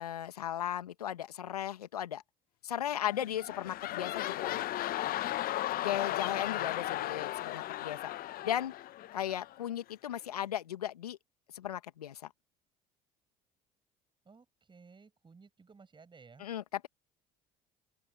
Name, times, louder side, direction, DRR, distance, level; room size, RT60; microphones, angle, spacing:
voice 1, 0.0-2.2 2.6-4.7 5.8-8.1 8.4-8.7 9.1-11.2 11.5-12.3 16.4-16.9, left 11 dB, 85° left, 1.9 m, -36 dB
sound 1, 3.1-9.6 10.1-10.2, left 14 dB, 50° left, 0.9 m, -36 dB
voice 2, 6.3-6.7 14.3-16.4, right 4 dB, 25° right, 5.6 m, -57 dB
open air
hypercardioid pair, 65°, 19 cm